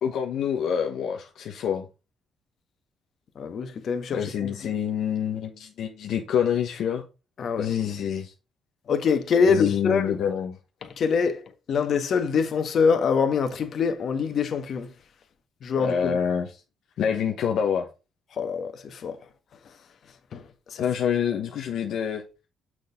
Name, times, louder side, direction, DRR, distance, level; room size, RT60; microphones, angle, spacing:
voice 1, 0.0-1.9 4.1-7.0 7.6-8.3 9.4-10.6 15.8-16.5 17.0-17.9 20.8-22.2, left 8 dB, 75° left, 1.1 m, -26 dB
voice 2, 3.3-4.5 7.4-7.7 8.9-10.2 10.8-14.9 15.6-16.2 18.4-19.2 20.3-20.8, left 5 dB, 60° left, 1.5 m, -25 dB
6.5 x 6.4 x 3.6 m
cardioid pair, 90°, 0 cm